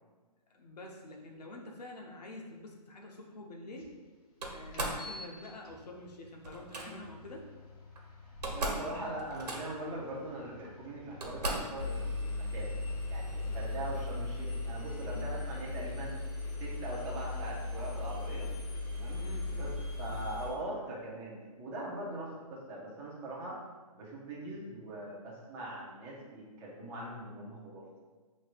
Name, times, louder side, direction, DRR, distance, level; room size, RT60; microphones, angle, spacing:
voice 1, 0.5-3.9 4.5-7.5 15.1-15.2 19.1-19.5, left 2 dB, 85° left, 0 dB, 1.0 m, -47 dB
sound 1, 3.8-3.9 4.7-14.1, left 2 dB, 65° left, 1.3 m, -51 dB
Slam, 4.4-5.1 6.4-6.9 7.9-8.0 8.3-8.9 9.2-9.9 10.6-10.7 11.2-11.8, right 2 dB, 85° right, 1.2 m, -36 dB
voice 2, 8.5-12.7 13.1-16.1 16.6-18.5 18.9-19.2 19.5-23.6 23.9-27.8, right 1 dB, 10° right, -5 dB, 0.6 m, -41 dB
Engine, 11.8-20.5, left 2 dB, 45° left, 1.4 m, -37 dB
6.3 x 3.1 x 2.5 m, 1.3 s
hypercardioid pair, 160°, 20 cm